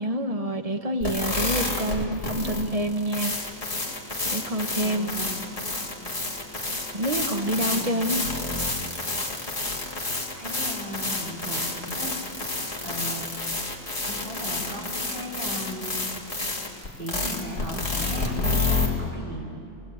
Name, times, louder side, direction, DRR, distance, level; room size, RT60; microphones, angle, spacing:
voice 1, 0.0-3.3 4.2-5.1 6.9-8.2, right 1 dB, 25° right, 6 dB, 1.0 m, -27 dB
sound 1, 1.0-18.9, left 2 dB, 20° left, 2.4 m, -29 dB
voice 2, 4.8-5.3 7.3-8.5 10.3-12.1 12.4-13.3 14.0-16.1 17.0-19.5, equal, 70° right, -1 dB, 4.5 m, -37 dB
27.5 x 19.0 x 8.6 m, 2.7 s
omnidirectional pair, 1.9 m